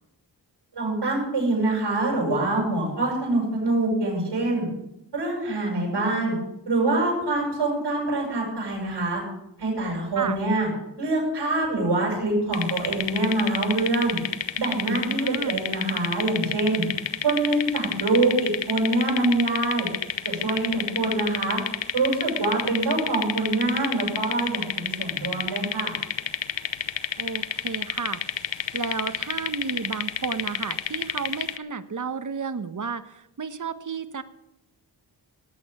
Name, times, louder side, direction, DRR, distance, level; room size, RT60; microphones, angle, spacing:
voice 1, 0.7-4.7 5.1-6.3 6.6-9.2 9.6-10.7 11.0-14.2 14.6-16.8 17.2-19.9 20.2-21.6 21.9-25.9, right 2 dB, 65° right, -3 dB, 8.0 m, -25 dB
sound 1, 12.5-31.6, left 10 dB, 85° left, 0.9 m, -30 dB
voice 2, 15.1-15.6 27.2-28.2 28.7-34.2, right 5 dB, 45° right, 11 dB, 1.2 m, -32 dB
18.5 x 8.6 x 6.8 m, 0.85 s
cardioid pair, 80°, 43 cm